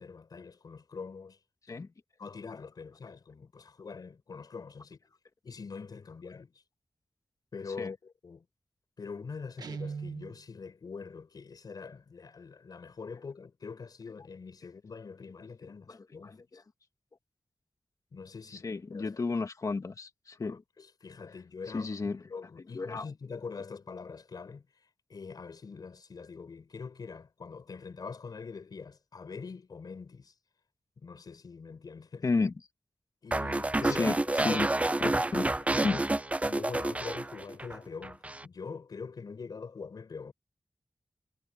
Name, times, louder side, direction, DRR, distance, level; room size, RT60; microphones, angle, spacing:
voice 1, 0.0-1.4 1.7-1.9 2.2-5.0 5.4-6.6 7.5-8.5 9.0-16.6 18.1-19.1 20.4-30.3 31.0-32.3 33.2-34.7 35.0-36.0 36.4-40.3, left 5 dB, 80° left, 5.1 m, -44 dB
Guitar, 9.6-10.4, right 5 dB, 90° right, 1.6 m, -38 dB
voice 2, 16.2-16.6 18.6-20.6 21.7-22.2 22.7-23.1 32.2-32.5 33.9-34.2 34.4-34.7 35.3-35.5 35.8-36.0, left 4 dB, 55° left, 2.1 m, -32 dB
sound 1, 33.3-37.8 38.0-38.4, right 2 dB, 20° right, 0.5 m, -29 dB
wide cardioid pair, 85°, 7 cm